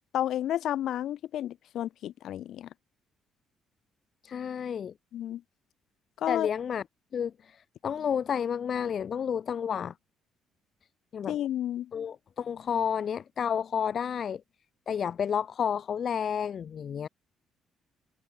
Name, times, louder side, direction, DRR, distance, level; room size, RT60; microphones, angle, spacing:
voice 1, 0.1-2.7 5.1-5.4 6.2-6.5 11.3-11.9, left 12 dB, 55° left, 1.2 m, -31 dB
voice 2, 4.2-4.9 6.3-6.8 7.1-7.3 7.8-9.9 11.1-11.3 11.9-14.4 14.9-17.1, left 8 dB, 35° left, 0.7 m, -30 dB
cardioid pair, 175°, 0 cm